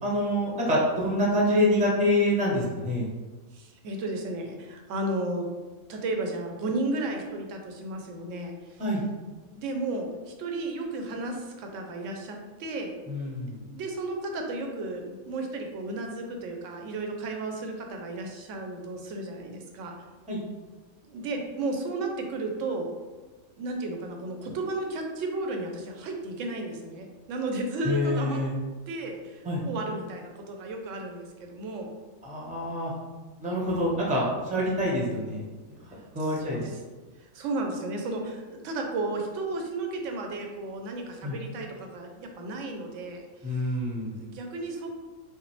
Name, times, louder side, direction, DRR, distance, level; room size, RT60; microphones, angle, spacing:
voice 1, 0.0-3.1 8.8-9.0 13.1-13.5 20.3-20.4 27.8-28.5 29.4-29.6 32.2-32.9 33.4-36.6 41.2-41.4 43.4-44.1, left 1 dB, 5° right, -4 dB, 0.6 m, -26 dB
voice 2, 3.5-5.5 5.9-8.8 9.5-12.9 13.5-19.9 21.0-22.9 23.6-28.4 28.9-31.9 36.2-36.8 37.2-43.6 44.2-44.9, right 2 dB, 65° right, 2 dB, 0.9 m, -33 dB
5.6 x 2.0 x 3.1 m, 1.3 s
omnidirectional pair, 1.5 m